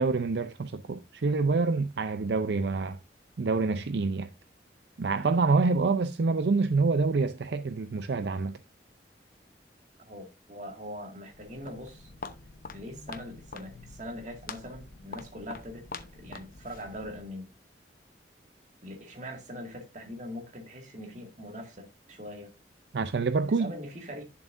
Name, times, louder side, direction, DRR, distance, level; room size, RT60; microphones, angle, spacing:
voice 1, 0.0-3.0 3.4-4.3 5.0-8.6 22.9-23.7, right 4 dB, 70° right, 0.5 m, -26 dB
voice 2, 10.1-12.1 12.7-15.8 16.1-17.5 18.8-22.5 23.4-24.2, equal, 45° right, 2.0 m, -42 dB
Walk footsteps, 11.3-17.4, left 4 dB, 55° left, 0.8 m, -45 dB
10.5 x 7.2 x 2.6 m
head